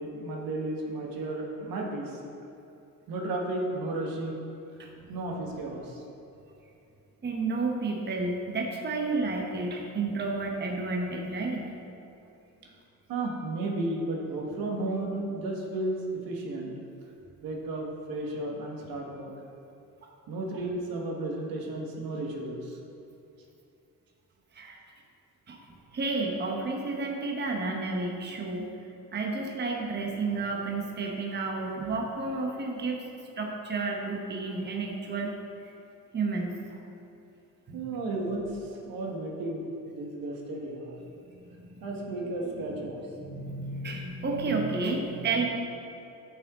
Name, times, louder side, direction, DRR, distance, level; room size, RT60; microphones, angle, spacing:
voice 1, 0.0-2.2 3.1-4.4 5.1-6.0 13.1-16.7 17.4-19.3 20.3-22.8 37.7-40.9 41.8-43.0 43.8-43.9, right 2 dB, 75° right, -1 dB, 1.5 m, -33 dB
voice 2, 7.2-11.6 24.5-24.8 25.5-25.6 25.9-28.7 29.1-33.0 33.4-35.4 35.6-35.7 36.1-36.8 37.7-37.9 42.4-42.9 43.2-45.5, right 3 dB, 30° right, 0 dB, 1.1 m, -31 dB
11.0 x 6.2 x 3.7 m, 2.8 s
cardioid pair, 110°, 35 cm